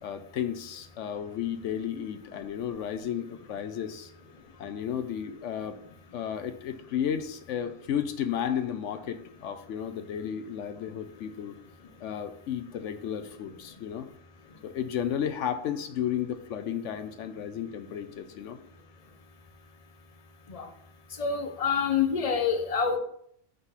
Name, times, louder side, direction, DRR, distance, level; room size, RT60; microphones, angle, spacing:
voice 1, 0.0-4.1 4.6-5.8 6.1-11.6 12.0-14.1 14.6-18.6, left 9 dB, 65° left, 9 dB, 0.8 m, -33 dB
voice 2, 21.2-23.0, left 6 dB, 35° left, 7 dB, 0.6 m, -26 dB
5.7 x 4.0 x 5.6 m, 0.67 s
omnidirectional pair, 1.5 m